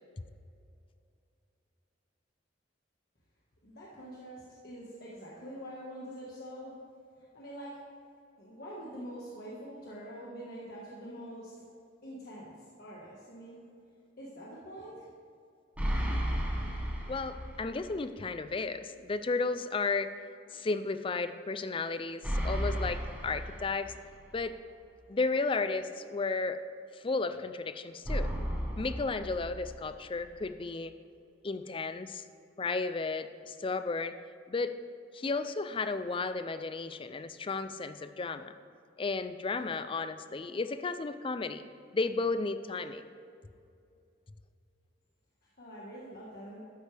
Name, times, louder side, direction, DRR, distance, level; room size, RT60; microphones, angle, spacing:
voice 1, 3.6-6.8 7.3-7.7 8.4-11.5 12.0-12.5 12.8-13.6 14.2-15.1 45.6-46.6, equal, 55° left, -5 dB, 1.6 m, -45 dB
sound 1, 15.8-17.8 18.1-18.2 22.2-24.2 28.0-30.0, equal, 10° right, 1.4 m, -33 dB
voice 2, 17.1-20.1 20.5-23.9 24.3-24.6 25.1-26.6 27.0-28.3 28.8-30.9 31.4-32.2 32.6-34.1 34.5-34.7 35.1-38.5 39.0-41.6 41.9-43.0, left 3 dB, 30° left, 11 dB, 0.4 m, -33 dB
12.5 x 9.7 x 3.4 m, 2.5 s
head